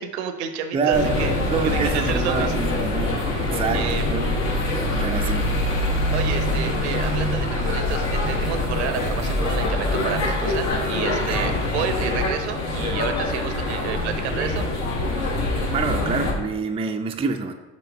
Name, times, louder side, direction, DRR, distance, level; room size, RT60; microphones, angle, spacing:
voice 1, 0.0-1.3 1.6-2.5 3.7-4.0 6.1-14.7, right 8 dB, 70° right, 8 dB, 0.6 m, -30 dB
voice 2, 0.7-4.5 5.0-5.5 11.3-11.6 15.7-17.5, right 5 dB, 15° right, 5 dB, 0.4 m, -27 dB
sound 1, 0.9-16.3, left 2 dB, 50° left, 1.3 m, -24 dB
6.3 x 3.0 x 5.2 m, 1.1 s
figure-of-eight pair, 60°, 35 cm